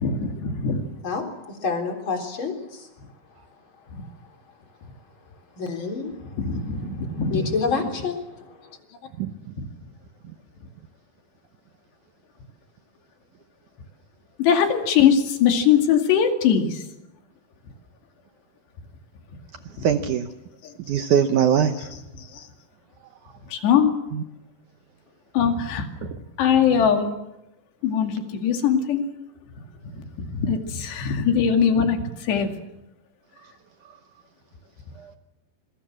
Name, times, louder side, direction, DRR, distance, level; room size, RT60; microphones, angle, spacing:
voice 1, 0.0-0.9 6.5-7.4 14.4-16.7 23.5-23.9 25.4-25.9 26.4-27.1 27.8-29.0 30.4-32.0 32.3-32.5, left 7 dB, 85° left, 5 dB, 4.6 m, -21 dB
voice 2, 1.0-2.9 5.6-8.8, left 4 dB, 30° left, 3 dB, 4.1 m, -29 dB
voice 3, 19.8-20.3 20.9-21.9 24.1-24.2 26.0-26.2 35.0-35.1, right 8 dB, 75° right, 8 dB, 1.8 m, -22 dB
26.5 x 22.0 x 7.5 m, 0.91 s
omnidirectional pair, 4.8 m